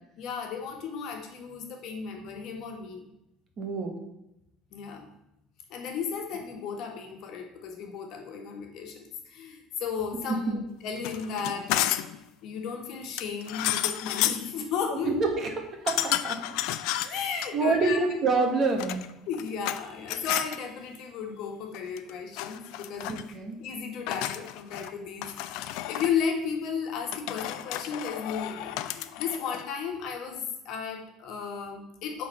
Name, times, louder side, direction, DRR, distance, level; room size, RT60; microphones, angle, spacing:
voice 1, 0.2-3.0 4.7-5.1 5.7-12.0 12.4-15.1 17.1-18.0 19.3-23.1 23.6-32.3, left 6 dB, 55° left, 3 dB, 1.5 m, -34 dB
voice 2, 3.6-4.0 10.5-10.6 15.0-16.5 17.0-17.2 17.5-19.0 23.1-23.6, right 3 dB, 35° right, 4 dB, 1.4 m, -27 dB
sound 1, 11.0-12.2 13.2-14.5 15.9-17.5 18.6-19.8 20.1-20.6 21.7-22.1 22.4-23.2 24.1-24.9 25.2-26.1 27.1-29.7, left 14 dB, 75° left, 0.4 m, -31 dB
8.4 x 4.0 x 5.6 m, 0.86 s
cardioid pair, 145°, 0 cm